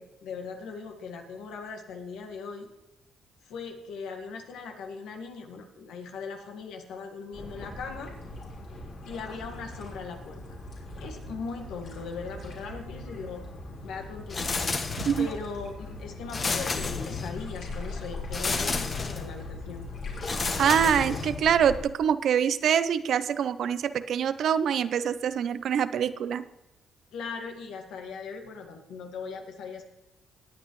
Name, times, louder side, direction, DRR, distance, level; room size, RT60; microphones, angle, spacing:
voice 1, 0.0-2.7 3.4-8.1 9.1-10.4 11.0-13.4 13.8-14.6 15.2-19.9 27.1-29.8, left 5 dB, 85° left, 4 dB, 1.8 m, -39 dB
sound 1, 7.3-21.8, left 2 dB, 65° left, 3.5 m, -40 dB
sound 2, 14.3-15.4 16.3-17.5 18.3-19.4 20.2-21.5, left 4 dB, 40° left, 1.2 m, -31 dB
voice 2, 20.6-26.4, right 8 dB, 65° right, 14 dB, 0.6 m, -25 dB
19.0 x 8.8 x 3.2 m, 0.97 s
cardioid pair, 90°, 0 cm